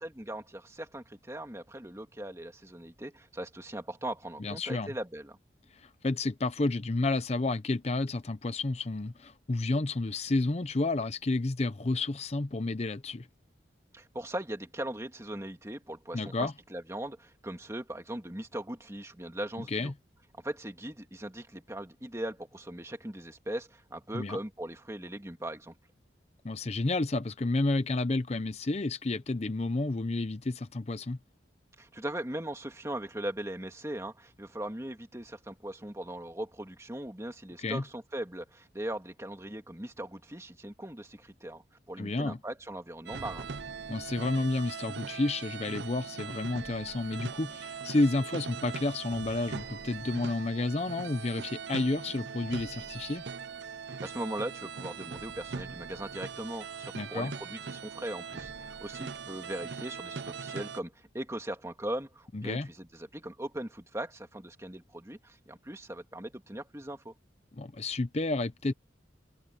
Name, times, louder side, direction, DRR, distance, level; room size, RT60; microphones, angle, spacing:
voice 1, 0.0-5.4 13.9-19.9 20.4-25.7 31.8-41.6 41.9-43.5 54.0-67.1, right 1 dB, 15° right, 2.2 m, -39 dB
voice 2, 4.4-4.9 5.7-13.3 16.1-16.5 19.7-19.9 24.1-24.4 26.4-31.2 37.6-37.8 42.0-42.4 43.9-53.2 56.9-57.3 62.3-62.7 67.5-68.7, left 2 dB, 35° left, 0.6 m, -30 dB
sound 1, 43.1-60.8, right 5 dB, 70° right, 0.7 m, -41 dB
head